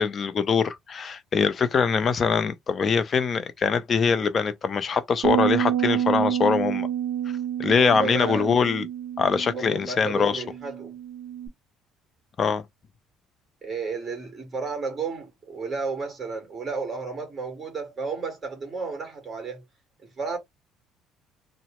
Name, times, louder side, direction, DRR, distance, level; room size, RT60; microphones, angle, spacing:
voice 1, 0.0-6.9 7.6-8.9 9.2-10.4 12.4-12.6, left 5 dB, 35° left, 0.5 m, -23 dB
sound 1, 5.2-11.5, right 10 dB, 65° right, 0.6 m, -28 dB
voice 2, 7.6-8.5 9.5-11.0 13.6-19.6 20.2-20.4, right 4 dB, 25° right, 1.5 m, -32 dB
2.8 x 2.0 x 2.9 m
cardioid pair, 115°, 0 cm